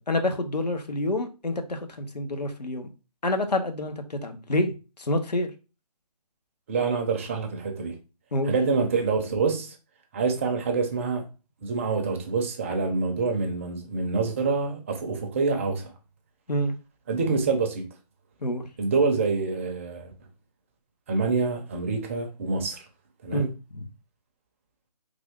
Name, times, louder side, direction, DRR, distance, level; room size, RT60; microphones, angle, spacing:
voice 1, 0.0-2.9 3.2-4.7 5.0-5.5 8.3-8.5 16.5-16.7 18.4-18.6 23.3-23.8, left 1 dB, 80° left, 1.0 m, -27 dB
voice 2, 6.7-8.0 8.4-9.8 10.1-11.2 11.6-15.9 17.1-17.9 18.8-20.1 21.1-22.8 23.2-23.5, right 4 dB, 20° right, 0.5 m, -26 dB
3.4 x 2.4 x 3.5 m
figure-of-eight pair, 150°, 21 cm